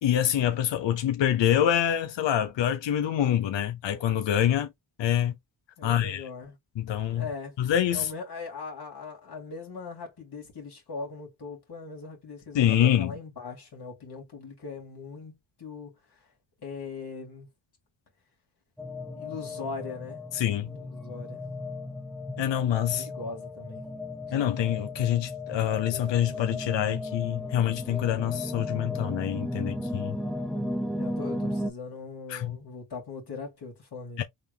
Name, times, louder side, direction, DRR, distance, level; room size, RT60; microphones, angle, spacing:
voice 1, 0.0-4.7 5.0-5.3 5.8-6.3 6.8-7.3 7.6-8.1 12.5-13.2 20.3-20.8 22.4-23.1 24.3-30.2 32.3-32.6 34.2-34.3, left 10 dB, 85° left, 0.7 m, -26 dB
voice 2, 5.8-6.6 7.1-7.6 7.9-16.2 16.6-17.5 19.1-20.2 20.7-21.4 22.9-23.8 30.9-34.2, left 4 dB, 65° left, 2.0 m, -40 dB
sound 1, 18.8-31.7, left 1 dB, ahead, 0.7 m, -35 dB
3.4 x 3.0 x 3.4 m
cardioid pair, 50°, 43 cm